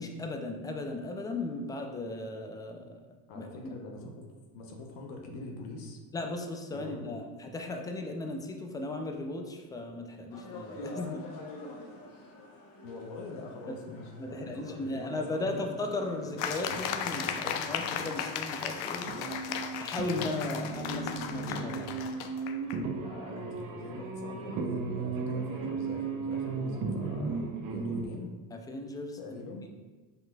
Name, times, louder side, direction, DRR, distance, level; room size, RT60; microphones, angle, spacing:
voice 1, 0.0-3.0 3.4-3.7 6.1-11.2 13.7-13.8 14.2-19.4 19.8-22.0 28.5-29.2 29.7-29.8, left 2 dB, 10° left, 4 dB, 0.3 m, -36 dB
voice 2, 3.3-4.3 4.5-6.0 6.7-7.2 12.8-15.6 23.0-28.3 29.2-29.6, left 3 dB, 85° left, 1 dB, 0.9 m, -43 dB
sound 1, 10.3-17.3, left 2 dB, 50° left, 1.0 m, -47 dB
sound 2, 15.1-18.2 18.5-28.1, right 4 dB, 50° right, 0.7 m, -36 dB
sound 3, 16.4-22.8, left 8 dB, 65° left, 0.5 m, -36 dB
5.3 x 3.9 x 2.3 m, 1.2 s
cardioid pair, 110°, 42 cm